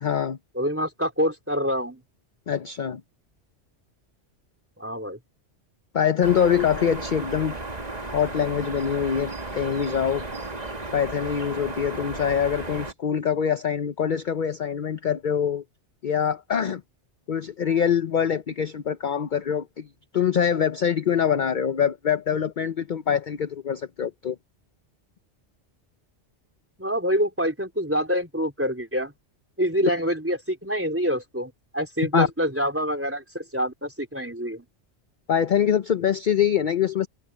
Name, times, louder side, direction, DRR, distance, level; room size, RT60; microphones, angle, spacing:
voice 1, 0.0-0.4 2.5-3.0 5.9-7.5 8.1-10.3 10.9-15.6 16.0-16.8 17.3-19.9 20.1-24.4 29.8-29.9 32.1-32.3 35.3-37.1, left 8 dB, 50° left, 0.8 m, -24 dB
voice 2, 0.6-2.0 4.8-5.2 26.8-29.1 29.6-34.6, equal, 10° right, 3.8 m, -26 dB
sound 1, 6.2-12.9, right 2 dB, 35° right, 2.0 m, -34 dB
omnidirectional pair, 1.2 m